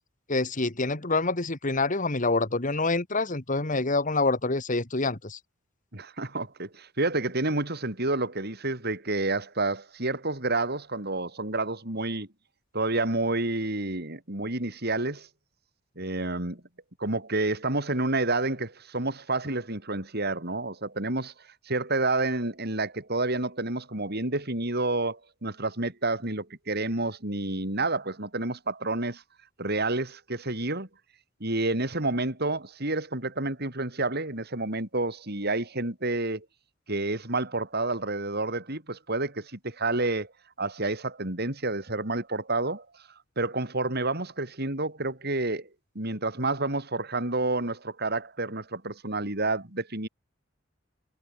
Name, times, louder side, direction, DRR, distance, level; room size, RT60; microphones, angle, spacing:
voice 1, 0.3-5.4, left 3 dB, 40° left, 1.9 m, -26 dB
voice 2, 5.9-12.3 12.7-15.3 16.0-16.6 17.0-21.3 21.7-29.2 29.6-30.9 31.4-36.5 36.9-40.3 40.6-42.9 43.4-45.7 46.0-50.1, right 2 dB, 55° right, 5.5 m, -29 dB
head